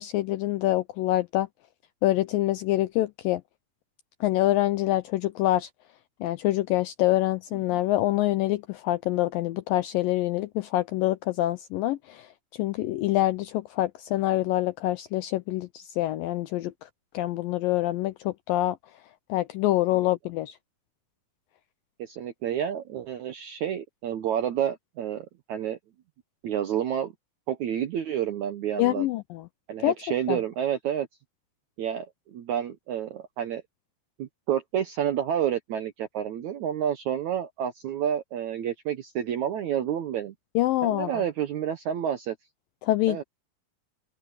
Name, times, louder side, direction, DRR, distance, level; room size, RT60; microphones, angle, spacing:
voice 1, 0.0-1.5 2.0-3.4 4.2-5.7 6.2-12.3 12.5-16.9 17.1-18.8 19.3-20.6 28.8-29.4 29.8-29.9 30.3-30.4 40.6-41.2 42.8-43.2, left 16 dB, 85° left, 2.0 m, -26 dB
voice 2, 22.0-25.8 26.4-27.1 27.5-29.1 29.7-31.1 31.8-33.6 34.2-40.3 40.8-42.3 43.1-43.2, right 9 dB, 75° right, 1.7 m, -29 dB
open air
omnidirectional pair, 4.7 m